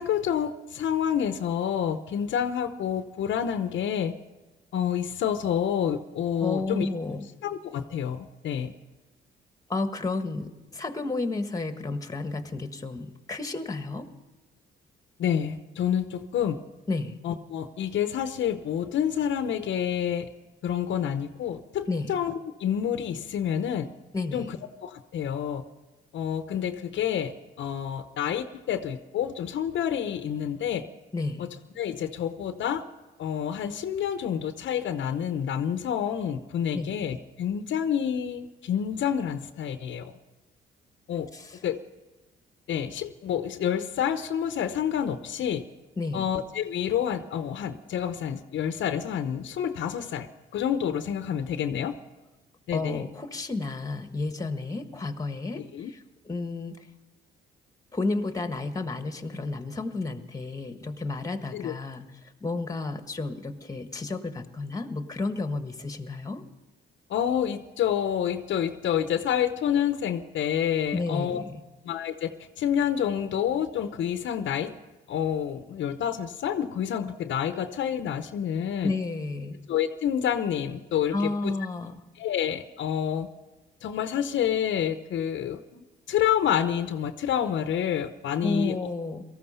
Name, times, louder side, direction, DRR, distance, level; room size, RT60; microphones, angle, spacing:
voice 1, 0.0-4.1 4.7-6.9 7.4-8.7 15.2-16.6 17.2-20.3 20.6-23.9 24.3-25.6 26.1-30.8 31.4-31.5 31.8-32.8 33.2-40.1 41.1-41.3 41.6-41.8 42.7-45.6 46.1-50.3 50.5-52.0 52.7-53.1 55.5-55.9 61.5-61.7 67.1-71.4 71.8-74.8 75.1-78.9 79.7-81.5 82.1-83.3 83.8-88.8, left 9 dB, 70° left, 10 dB, 0.8 m, -28 dB
voice 2, 6.4-7.2 9.7-14.1 16.9-17.1 21.9-22.1 24.1-24.5 31.1-31.4 36.7-37.0 41.3-41.6 46.0-46.3 52.7-56.0 56.2-56.8 57.9-62.1 62.4-66.4 70.9-71.6 78.8-79.6 81.1-82.0 88.4-89.2, left 3 dB, 15° left, 8 dB, 1.5 m, -31 dB
18.0 x 14.0 x 5.6 m, 1.1 s
cardioid pair, 90°, 20 cm